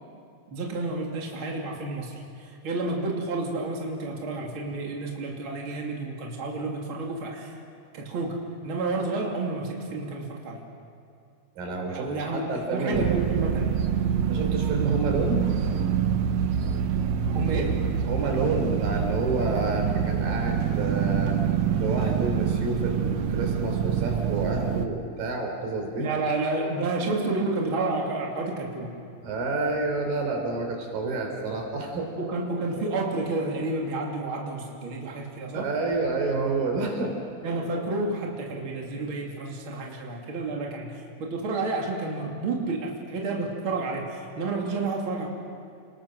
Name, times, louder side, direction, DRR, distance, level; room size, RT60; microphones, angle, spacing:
voice 1, 0.5-7.5 7.9-10.6 11.9-13.8 17.3-17.9 26.0-29.0 32.2-35.7 37.4-45.3, right 3 dB, 40° right, -1 dB, 3.2 m, -30 dB
voice 2, 11.6-13.2 14.3-15.5 18.1-21.4 21.8-26.1 29.2-32.1 35.5-37.2, right 3 dB, 85° right, 2 dB, 5.2 m, -29 dB
sound 1, 12.9-24.9, right 8 dB, 65° right, 2.0 m, -26 dB
29.5 x 20.0 x 6.4 m, 2.5 s
omnidirectional pair, 3.9 m